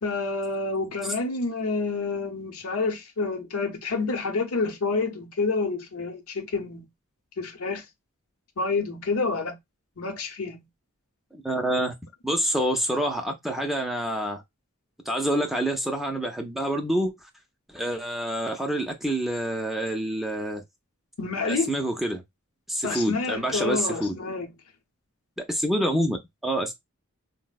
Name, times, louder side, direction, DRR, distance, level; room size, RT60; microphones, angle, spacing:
voice 1, 0.0-6.9 7.4-7.8 8.6-9.5 10.0-10.6 21.2-21.7 22.8-24.5, left 3 dB, 80° left, 0.7 m, -28 dB
voice 2, 11.3-11.9 12.2-14.4 15.1-17.1 17.7-20.6 21.5-22.2 22.7-24.2 25.4-26.2 26.4-26.7, right 1 dB, ahead, 0.4 m, -27 dB
4.1 x 2.0 x 2.2 m
head